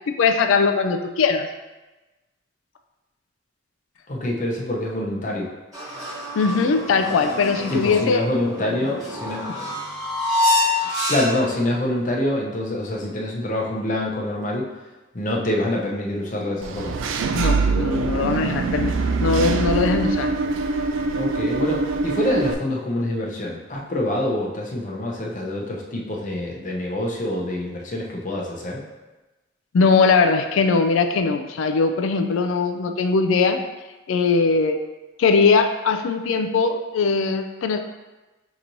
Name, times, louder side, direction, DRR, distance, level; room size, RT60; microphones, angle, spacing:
voice 1, 0.1-1.5 6.4-8.3 17.3-18.9 19.2-20.3 29.7-33.6 34.1-34.8 35.2-37.8, left 4 dB, 75° left, 6 dB, 0.3 m, -20 dB
voice 2, 4.1-5.5 7.7-9.4 11.1-14.7 15.1-17.0 21.1-28.8, left 1 dB, 40° left, -2 dB, 0.6 m, -26 dB
sound 1, 5.7-11.6, left 2 dB, 15° right, 1.2 m, -26 dB
Engine / Mechanisms, 16.6-22.5, right 4 dB, 70° right, 0.3 m, -23 dB
5.7 x 3.0 x 2.6 m, 1.1 s
head